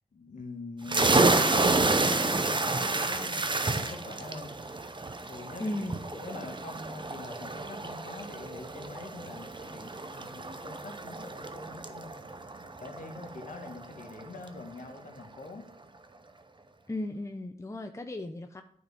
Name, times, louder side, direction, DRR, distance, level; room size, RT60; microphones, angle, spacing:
voice 1, 0.1-4.5 5.3-12.3 12.8-15.7, left 3 dB, 60° left, 2 dB, 1.7 m, -44 dB
sound 1, 0.9-14.2, right 3 dB, 30° right, 0.8 m, -30 dB
voice 2, 5.6-6.2 16.9-18.6, left 1 dB, 20° left, 6 dB, 0.7 m, -36 dB
9.3 x 4.3 x 4.9 m, 0.63 s
cardioid pair, 45°, 15 cm